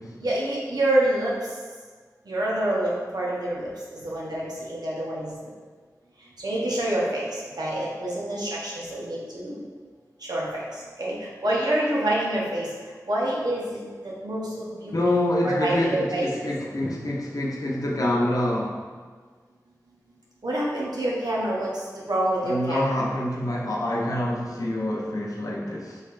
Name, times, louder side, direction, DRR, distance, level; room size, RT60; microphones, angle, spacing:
voice 1, 0.2-1.3 2.3-5.3 6.4-7.2 7.6-9.6 10.3-10.6 11.0-12.7 13.1-14.9 15.4-16.5 20.4-21.7 22.1-22.8, right 1 dB, 80° right, -5 dB, 0.8 m, -27 dB
voice 2, 14.9-18.8 22.4-26.0, left 1 dB, 60° left, -3 dB, 0.7 m, -26 dB
4.0 x 3.2 x 2.5 m, 1.5 s
wide cardioid pair, 65°, 7 cm